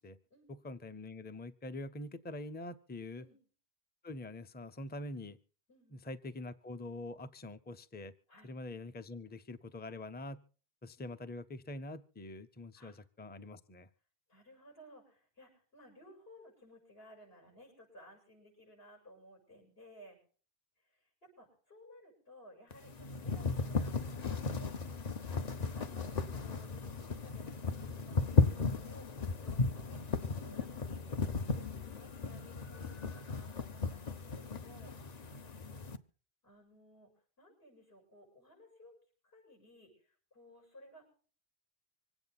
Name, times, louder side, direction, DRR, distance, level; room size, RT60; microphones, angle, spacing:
voice 1, 0.5-3.2 4.0-5.4 5.9-8.1 8.4-10.4 10.8-13.9, left 2 dB, 10° left, 12 dB, 0.6 m, -45 dB
voice 2, 14.3-20.2 20.8-26.1 26.3-31.0 31.5-35.0 36.4-37.1 37.4-39.0 39.2-41.1, equal, 75° left, -2 dB, 8.0 m, -58 dB
sound 1, 22.7-36.0, left 4 dB, 45° left, 0.9 m, -35 dB
25.5 x 9.0 x 4.1 m, 0.42 s
omnidirectional pair, 1.1 m